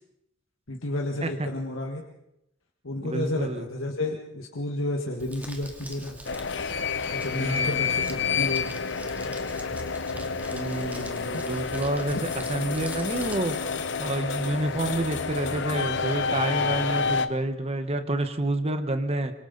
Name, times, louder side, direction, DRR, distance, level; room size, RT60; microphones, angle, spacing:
voice 1, 0.7-2.0 2.8-6.2 7.1-8.8 11.3-11.4, left 1 dB, 85° left, 1 dB, 1.9 m, -31 dB
voice 2, 3.0-3.7 7.3-7.9 10.5-13.6 14.0-19.3, right 1 dB, 30° right, 8 dB, 1.4 m, -29 dB
Crumpling crinkling, 5.2-13.4, right 1 dB, 10° right, 2.6 m, -44 dB
sound 1, 6.2-17.3, left 5 dB, 65° left, 1.1 m, -29 dB
26.0 x 25.5 x 4.1 m, 0.82 s
head